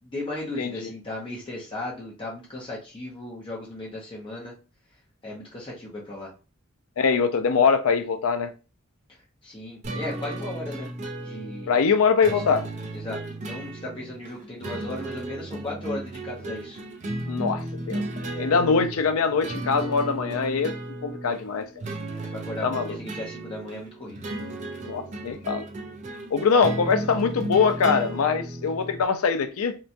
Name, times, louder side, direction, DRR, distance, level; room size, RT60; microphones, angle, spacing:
voice 1, 0.0-4.5 5.2-6.3 9.4-10.9 11.2-11.8 12.2-12.4 12.9-13.2 13.4-16.8 22.1-24.2, left 2 dB, 25° left, 0.6 m, -36 dB
voice 2, 0.6-0.9 7.0-8.5 11.7-12.6 17.3-18.0 18.3-20.8 21.0-21.7 22.6-23.0 24.9-25.6 26.3-29.8, left 5 dB, 85° left, 0.4 m, -23 dB
sound 1, 9.8-29.0, right 1 dB, 35° right, 0.4 m, -35 dB
2.8 x 2.2 x 2.5 m
head